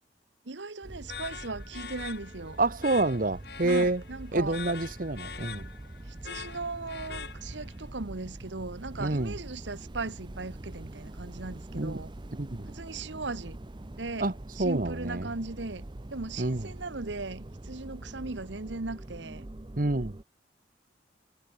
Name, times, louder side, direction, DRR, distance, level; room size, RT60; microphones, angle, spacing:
voice 1, 0.4-2.6 3.6-4.6 6.1-12.1 12.7-13.6 14.0-15.8 16.1-19.4, right 3 dB, 85° right, 1.4 m, -38 dB
sound 1, 0.8-20.2, right 1 dB, 25° right, 0.7 m, -44 dB
sound 2, 1.1-7.8, left 6 dB, 60° left, 1.7 m, -43 dB
voice 2, 2.6-4.0 4.3-5.7 9.0-9.3 11.7-12.0 12.3-12.7 14.2-14.3 14.6-15.3 16.4-16.7 19.8-20.1, right 2 dB, 50° right, 1.1 m, -28 dB
head